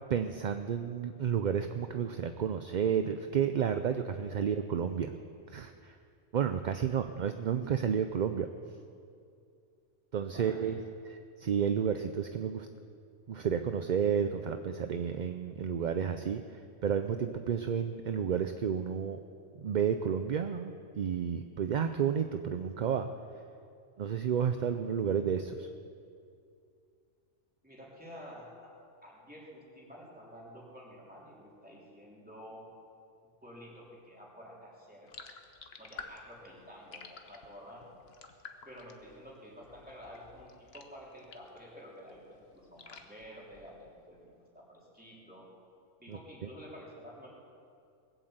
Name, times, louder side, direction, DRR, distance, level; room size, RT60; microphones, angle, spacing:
voice 1, 0.1-5.1 5.5-6.0 6.3-8.5 10.1-12.7 13.3-19.2 19.6-23.1 24.0-25.7 46.1-46.5, right 7 dB, 50° right, 8 dB, 0.6 m, -31 dB
voice 2, 10.3-10.7 27.6-28.7 29.0-32.6 33.4-35.1 35.8-37.9 38.6-45.5 46.0-47.3, equal, 5° right, -5 dB, 3.4 m, -50 dB
sound 1, 35.1-41.7 42.0-44.1, left 5 dB, 60° left, 1.3 m, -52 dB
20.5 x 8.0 x 7.9 m, 2.4 s
omnidirectional pair, 1.2 m